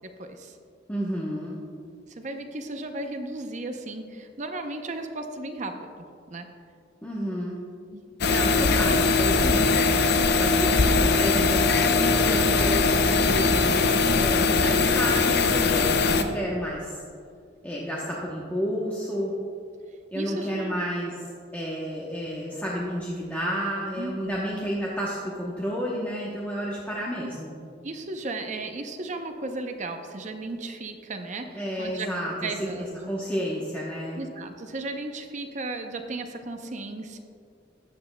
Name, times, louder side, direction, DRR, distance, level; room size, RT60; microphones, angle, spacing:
voice 1, 0.2-0.6 2.1-5.8 6.3-6.5 7.9-8.6 10.3-11.1 20.1-20.7 24.0-24.4 27.8-32.1 32.4-33.1 34.2-37.2, right 2 dB, 40° right, 5 dB, 0.6 m, -35 dB
voice 2, 0.9-1.6 7.0-7.6 8.3-9.9 10.4-17.0 17.6-19.3 20.1-21.1 21.5-27.6 31.5-32.5 32.8-34.2, equal, 10° left, -5 dB, 0.9 m, -31 dB
sound 1, 8.2-16.2, left 4 dB, 60° left, 0.5 m, -21 dB
14.5 x 9.4 x 2.2 m, 2.3 s
head